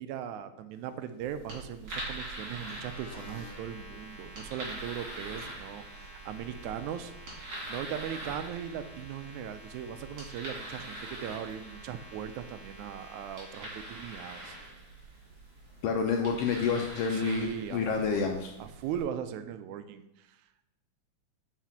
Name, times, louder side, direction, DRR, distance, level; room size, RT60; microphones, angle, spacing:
voice 1, 0.0-14.6 17.1-20.7, right 9 dB, 85° right, 11 dB, 2.0 m, -39 dB
sound 1, 1.2-19.0, right 1 dB, 50° right, 3.6 m, -44 dB
sound 2, 1.9-14.7, equal, 30° left, 2.8 m, -51 dB
voice 2, 15.8-18.5, left 5 dB, 80° left, 3 dB, 1.4 m, -29 dB
5.9 x 4.9 x 5.7 m, 0.91 s
omnidirectional pair, 3.3 m